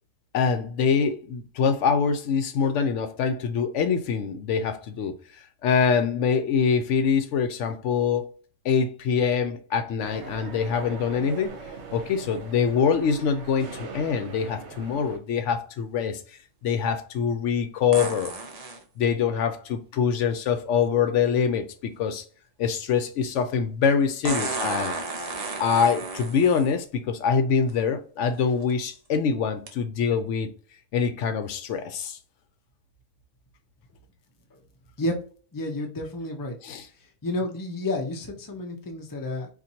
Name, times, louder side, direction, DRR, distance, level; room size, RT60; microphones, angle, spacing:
voice 1, 0.3-5.2 5.6-8.3 8.6-11.5 11.9-16.2 16.6-18.3 19.0-22.2 22.6-24.9 25.6-30.5 30.9-32.2 36.6-36.9, left 6 dB, 75° left, 0.9 m, -24 dB
sound 1, 10.0-15.2, right 4 dB, 65° right, 1.0 m, -41 dB
sound 2, 17.9-18.8 20.8-20.9 24.2-26.7 27.7-27.8 28.4-28.7 29.7-29.8, right 3 dB, 40° right, 0.7 m, -32 dB
voice 2, 35.5-36.6 37.2-39.5, left 1 dB, 25° left, 0.5 m, -30 dB
4.2 x 2.5 x 2.7 m
omnidirectional pair, 1.3 m